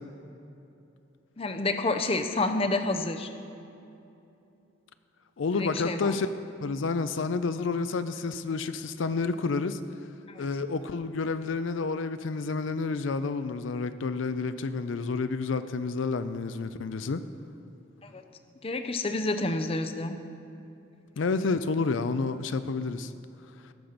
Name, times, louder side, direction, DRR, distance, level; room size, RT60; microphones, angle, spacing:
voice 1, 1.4-3.3 5.6-6.2 10.3-10.4 18.0-18.2 18.6-20.2, left 2 dB, 30° left, 8 dB, 0.5 m, -29 dB
voice 2, 5.4-6.3 6.6-9.8 10.4-17.2 21.2-23.1, left 4 dB, 75° left, 11 dB, 0.5 m, -29 dB
18.0 x 7.0 x 5.1 m, 2.8 s
head